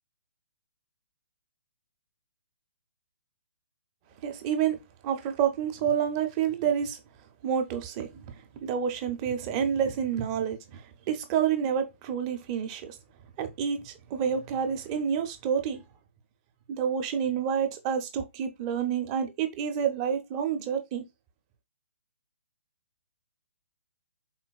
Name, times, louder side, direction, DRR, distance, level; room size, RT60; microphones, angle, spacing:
voice 1, 4.2-4.8 5.0-7.0 7.4-13.0 13.4-15.8 16.7-21.0, right 8 dB, 25° right, 0.5 m, -29 dB
3.8 x 2.2 x 2.3 m
hypercardioid pair, 150°, 8 cm